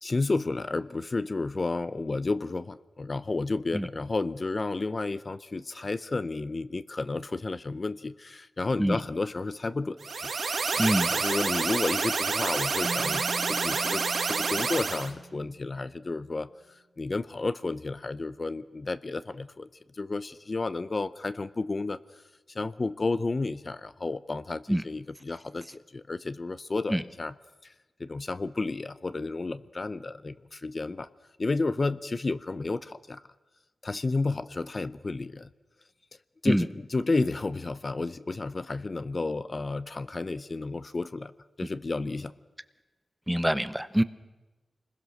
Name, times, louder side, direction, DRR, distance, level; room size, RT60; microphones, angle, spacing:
voice 1, 0.0-10.3 10.7-10.8 11.1-19.7 19.9-22.2 22.5-27.4 27.6-27.7 28.0-31.1 31.4-33.2 33.8-35.5 36.4-41.3 41.6-42.3, left 3 dB, 35° left, 14 dB, 0.6 m, -31 dB
sound 1, 10.0-15.1, right 4 dB, 65° right, 1.7 m, -28 dB
voice 2, 10.8-11.1 24.7-24.8 26.9-27.0 36.5-36.6 43.3-44.0, equal, 5° right, 14 dB, 0.7 m, -24 dB
Keyboard (musical), 12.8-16.1, right 4 dB, 40° right, 1.3 m, -42 dB
27.0 x 21.0 x 6.5 m, 1.1 s
wide cardioid pair, 105°, 0 cm